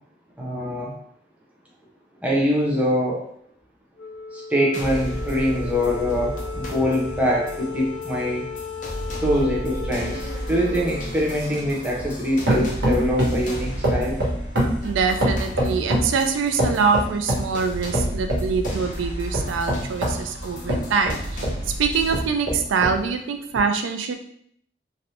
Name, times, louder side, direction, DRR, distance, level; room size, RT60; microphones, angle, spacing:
voice 1, 0.4-0.9 2.2-3.3 4.3-8.4 9.2-14.2, equal, 10° right, -4 dB, 0.6 m, -24 dB
Wind instrument woodwind instrument, 4.0-12.5, left 4 dB, 65° left, 0.3 m, -36 dB
sound 1, 4.7-22.2, equal, 45° left, 0.7 m, -34 dB
sound 2, 8.9-12.2 12.5-13.5 13.8-16.2 16.6-17.5 17.9-18.8 19.3-21.6 22.1-23.0 23.6-23.7, right 1 dB, 65° right, 0.9 m, -25 dB
voice 2, 14.8-24.1, right 5 dB, 90° right, 6 dB, 0.3 m, -24 dB
3.2 x 2.5 x 2.7 m, 0.67 s
head